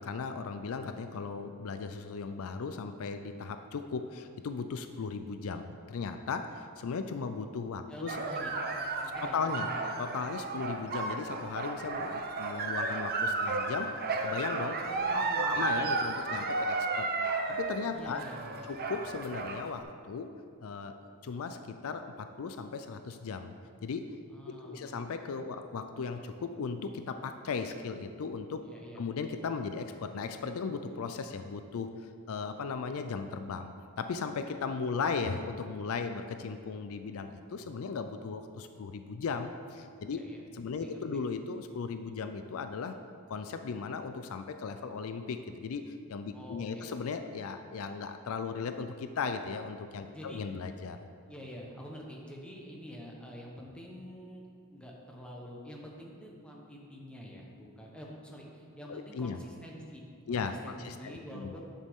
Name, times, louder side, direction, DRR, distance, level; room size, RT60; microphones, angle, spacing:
voice 1, 0.0-8.2 9.2-9.7 10.0-14.8 15.1-18.2 18.7-20.3 20.6-23.5 23.8-24.2 24.5-28.7 29.0-40.3 40.5-43.0 43.3-51.0 58.9-59.4 60.3-61.6, left 5 dB, 70° left, 8 dB, 0.4 m, -37 dB
voice 2, 7.9-8.5 8.9-9.8 14.7-16.1 17.9-18.8 24.3-25.0 28.6-29.0 40.1-40.4 40.8-41.2 46.3-46.9 50.1-50.4 51.3-54.4 54.7-60.0 60.3-61.6, equal, 5° left, -2 dB, 1.1 m, -47 dB
sound 1, 8.1-19.7, right 3 dB, 45° right, 0.7 m, -33 dB
10.5 x 6.5 x 3.6 m, 2.3 s
head